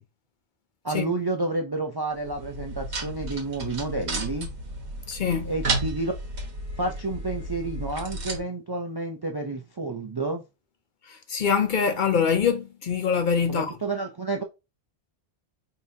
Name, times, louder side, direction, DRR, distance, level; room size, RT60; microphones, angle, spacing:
voice 1, 0.8-4.5 5.4-6.1 6.8-10.4 13.5-14.4, right 2 dB, 40° right, 0.3 m, -30 dB
sound 1, 2.1-8.4, right 2 dB, 80° right, 1.5 m, -33 dB
voice 2, 5.1-5.5 11.0-13.7, left 6 dB, 55° left, 0.6 m, -24 dB
5.3 x 2.7 x 2.7 m
omnidirectional pair, 1.1 m